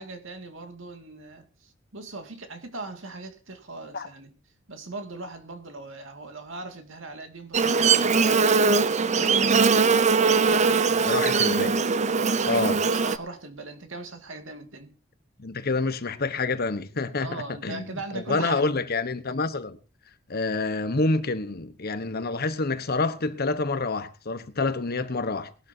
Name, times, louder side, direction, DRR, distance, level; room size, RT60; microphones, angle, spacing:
voice 1, 0.0-4.3 4.7-8.8 9.1-9.9 10.2-11.2 12.1-14.9 17.2-18.7, right 2 dB, 70° right, 2.2 m, -39 dB
Buzz, 7.5-13.2, right 4 dB, 35° right, 0.6 m, -21 dB
voice 2, 11.0-11.7 12.5-12.8 15.4-19.8 20.3-25.5, left 3 dB, 50° left, 1.1 m, -27 dB
20.5 x 12.5 x 2.8 m
head